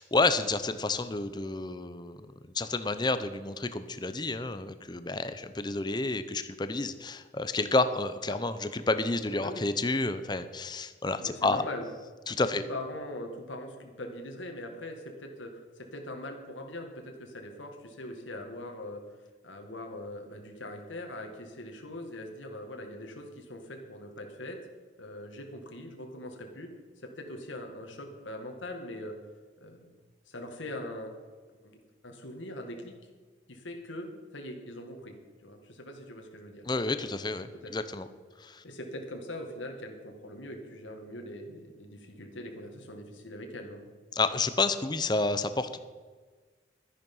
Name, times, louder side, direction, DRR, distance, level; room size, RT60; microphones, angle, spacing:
voice 1, 0.0-2.3 2.5-11.6 12.3-12.6 36.7-38.1 38.4-38.6 44.1-45.8, left 3 dB, 25° left, 11 dB, 0.7 m, -30 dB
voice 2, 9.3-9.6 11.2-11.8 12.5-19.0 19.4-24.6 25.0-26.7 27.0-29.2 29.6-29.9 30.3-31.1 31.6-31.8 32.0-32.9 33.5-35.1 35.4-36.7 37.6-37.7 38.6-43.8, left 1 dB, 90° left, 3 dB, 2.1 m, -41 dB
13.0 x 10.5 x 5.5 m, 1.4 s
head